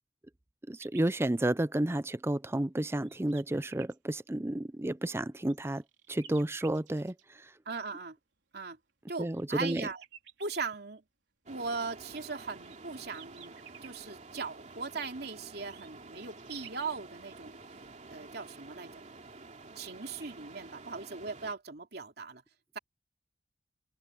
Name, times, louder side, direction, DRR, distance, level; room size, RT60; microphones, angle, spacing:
voice 1, 0.7-5.8 6.1-7.1 9.2-9.9, right 1 dB, 15° right, 0.5 m, -31 dB
sound 1, 0.8-1.1 1.8-1.9 2.6-4.0 5.0-7.2 8.9-10.7 12.2-14.0 15.5-16.9 18.2-18.3 18.5-18.9, right 9 dB, 75° right, 4.2 m, -54 dB
voice 2, 7.6-8.2 8.5-8.8 9.1-10.0 10.4-11.0 11.5-13.6 13.8-17.6 18.1-18.9 19.8-22.4, right 4 dB, 60° right, 2.9 m, -39 dB
sound 2, 11.5-21.6, right 3 dB, 40° right, 2.9 m, -50 dB
open air
head